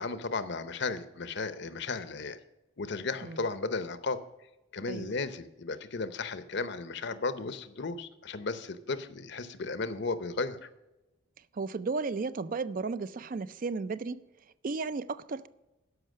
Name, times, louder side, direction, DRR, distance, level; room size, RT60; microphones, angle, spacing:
voice 1, 0.0-2.4 2.8-4.2 4.7-10.7, left 3 dB, 55° left, 0.7 m, -35 dB
voice 2, 11.5-14.3 14.6-15.5, right 4 dB, 40° right, 0.4 m, -34 dB
13.0 x 5.7 x 6.4 m
head